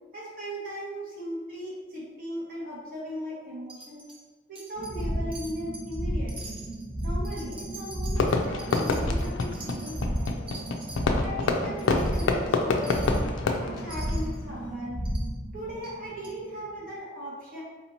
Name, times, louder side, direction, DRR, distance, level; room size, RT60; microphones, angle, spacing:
voice 1, 0.1-4.0 4.5-6.6 7.0-10.6 11.2-13.2 13.6-15.0 15.5-17.6, equal, 45° right, -6 dB, 1.1 m, -38 dB
Wind chime, 3.7-4.2 4.6-5.1 5.3-6.0 6.3-11.0 11.4-11.5 11.8-12.3 12.8-13.2 13.9-14.4 15.1-15.3 15.8-15.9 16.2-16.3, right 2 dB, 25° right, 0.6 m, -45 dB
sound 1, 4.7-16.5, equal, 30° left, 0.8 m, -33 dB
Fireworks, 8.2-14.7, left 3 dB, 75° left, 0.4 m, -28 dB
4.1 x 2.8 x 2.7 m, 1.4 s
head